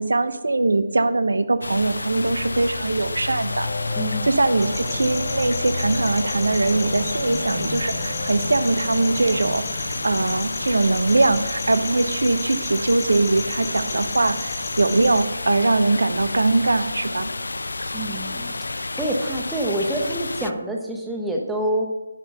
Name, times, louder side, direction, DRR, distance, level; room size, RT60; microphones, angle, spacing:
voice 1, 0.0-3.7 4.2-17.3, right 2 dB, 80° right, 12 dB, 0.7 m, -21 dB
sound 1, 1.6-20.5, left 2 dB, 80° left, 0.4 m, -30 dB
sound 2, 3.5-12.0, left 2 dB, 40° left, 1.2 m, -35 dB
voice 2, 4.0-4.3 17.9-18.6 19.0-21.9, right 1 dB, 5° right, 0 dB, 1.0 m, -26 dB
sound 3, 4.6-15.2, left 3 dB, 20° left, 1.5 m, -35 dB
10.5 x 4.4 x 6.6 m, 1.1 s
figure-of-eight pair, 150°, 0 cm